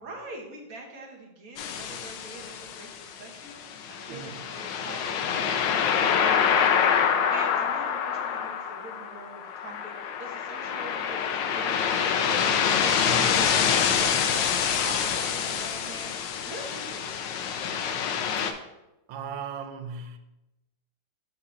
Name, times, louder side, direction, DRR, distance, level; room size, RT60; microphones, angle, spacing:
voice 1, 0.0-16.1 16.4-17.5, right 2 dB, 50° right, 1.5 m, -44 dB
sound 1, 1.6-18.5, left 7 dB, 75° left, 1.2 m, -26 dB
voice 2, 4.1-4.5 13.0-13.4 18.4-18.5 19.1-20.2, right 5 dB, 80° right, 1.4 m, -38 dB
7.6 x 2.8 x 5.9 m
omnidirectional pair, 2.2 m